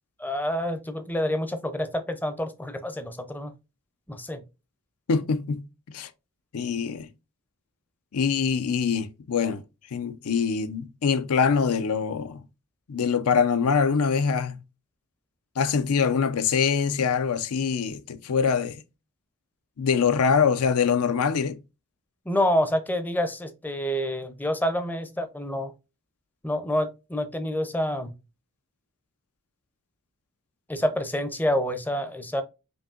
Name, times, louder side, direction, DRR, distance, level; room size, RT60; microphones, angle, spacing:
voice 1, 0.2-3.5 4.1-4.4 22.3-25.7 26.4-28.1 30.7-32.4, equal, 10° left, 0.5 m, -27 dB
voice 2, 5.1-6.1 6.5-7.1 8.1-9.6 9.9-12.4 12.9-14.6 15.6-18.8 19.8-21.6, left 6 dB, 80° left, 0.5 m, -24 dB
5.3 x 2.7 x 2.3 m
head